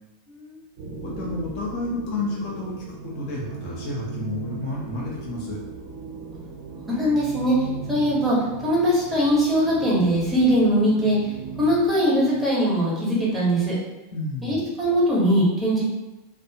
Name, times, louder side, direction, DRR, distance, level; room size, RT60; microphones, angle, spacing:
voice 1, 0.3-0.6 6.8-8.4 8.6-11.2 11.6-13.7 14.4-15.8, equal, 10° right, -7 dB, 1.1 m, -21 dB
sound 1, 0.8-12.7, right 5 dB, 60° right, 0.9 m, -37 dB
voice 2, 1.0-5.6 14.1-14.6, left 2 dB, 50° left, -4 dB, 0.7 m, -31 dB
2.5 x 2.1 x 2.7 m, 1.0 s
figure-of-eight pair, 90°, 0 cm